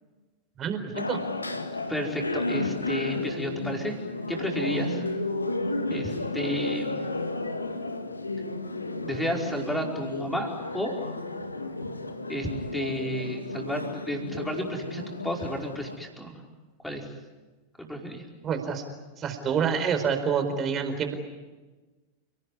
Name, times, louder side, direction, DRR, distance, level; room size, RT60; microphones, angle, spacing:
voice 1, 0.6-1.2 18.4-18.8 19.2-21.1, right 6 dB, 25° right, 7 dB, 4.5 m, -27 dB
sound 1, 0.9-16.0, left 2 dB, 80° left, 1.9 m, -33 dB
voice 2, 1.9-4.0 4.3-5.0 5.9-7.0 9.0-10.9 12.3-16.4 16.8-17.1 17.8-18.2, equal, 5° left, 1 dB, 5.1 m, -32 dB
30.0 x 18.5 x 9.8 m, 1.3 s
figure-of-eight pair, 90°, 0 cm